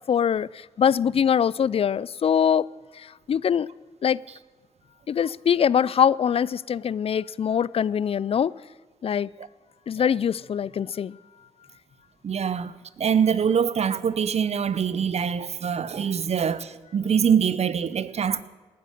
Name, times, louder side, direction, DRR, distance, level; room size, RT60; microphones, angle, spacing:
voice 1, 0.1-0.5 0.8-2.6 3.3-3.7 4.0-4.2 5.1-8.5 9.0-9.3 9.9-11.2, left 8 dB, 50° left, 0.4 m, -23 dB
voice 2, 12.2-18.4, right 7 dB, 60° right, 0.8 m, -24 dB
18.5 x 10.0 x 6.6 m
cardioid pair, 55°, 13 cm